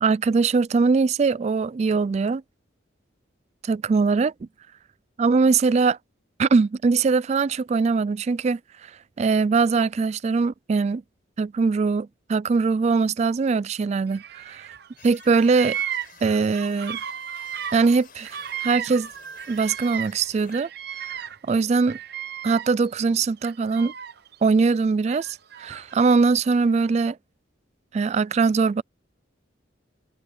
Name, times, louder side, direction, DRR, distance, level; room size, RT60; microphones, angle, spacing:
voice 1, 0.0-2.4 3.6-4.3 5.2-6.0 6.4-11.0 11.4-14.7 15.0-15.8 16.2-17.0 17.7-19.1 19.5-20.7 21.0-22.0 22.4-23.9 24.4-27.2 27.9-28.8, right 4 dB, 35° right, 0.3 m, -22 dB
Bird vocalization bird call bird song, 14.1-14.9 15.1-20.2 20.5-22.9 23.4-24.3 25.1-26.2, right 9 dB, 55° right, 0.8 m, -35 dB
sound 1, 15.0-20.6, left 7 dB, 50° left, 6.6 m, -51 dB
head